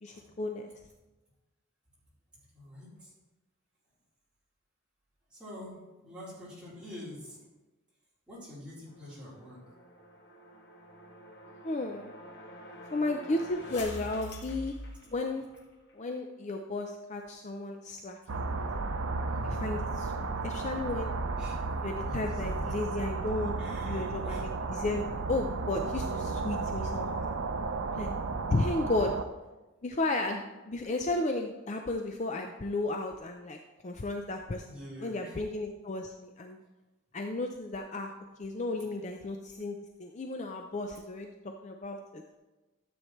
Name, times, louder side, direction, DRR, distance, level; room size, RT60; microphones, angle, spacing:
voice 1, 0.0-0.7 11.6-12.1 12.9-14.7 15.1-15.4 15.9-18.4 19.6-20.1 20.4-21.1 21.8-23.5 23.9-27.3 27.9-28.1 28.5-29.1 29.8-34.7 35.0-36.6 37.1-38.1 38.4-42.2, left 2 dB, 35° left, 4 dB, 0.5 m, -34 dB
voice 2, 2.5-3.1 5.3-7.4 8.3-9.6 19.3-19.7 21.4-22.7 23.6-24.5 34.7-35.4, left 1 dB, 5° right, -9 dB, 3.8 m, -47 dB
sound 1, 8.9-15.6, left 1 dB, 50° left, 1.2 m, -46 dB
sound 2, 18.3-29.2, right 3 dB, 75° right, 0.6 m, -33 dB
13.0 x 7.9 x 3.1 m, 1.1 s
head